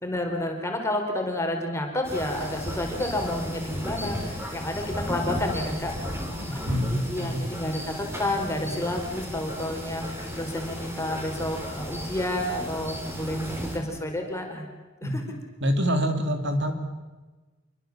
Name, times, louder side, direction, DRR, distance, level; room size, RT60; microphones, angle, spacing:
voice 1, 0.0-14.7 15.0-15.2, left 1 dB, 15° left, 2 dB, 4.3 m, -30 dB
sound 1, 2.0-13.8, equal, 10° right, 4.4 m, -34 dB
voice 2, 6.5-7.5 15.0-15.2 15.6-16.7, equal, 60° right, 6 dB, 2.8 m, -26 dB
27.0 x 23.0 x 7.3 m, 1.2 s
head